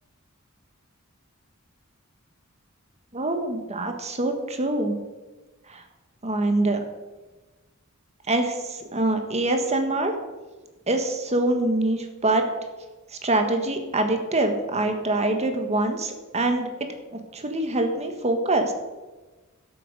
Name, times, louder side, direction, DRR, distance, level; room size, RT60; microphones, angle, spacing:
voice 1, 3.1-4.9 5.7-5.8 6.2-6.8 8.3-10.1 10.9-12.4 13.2-18.7, right 2 dB, 30° right, 5 dB, 1.5 m, -25 dB
13.0 x 8.2 x 6.7 m, 1.2 s
head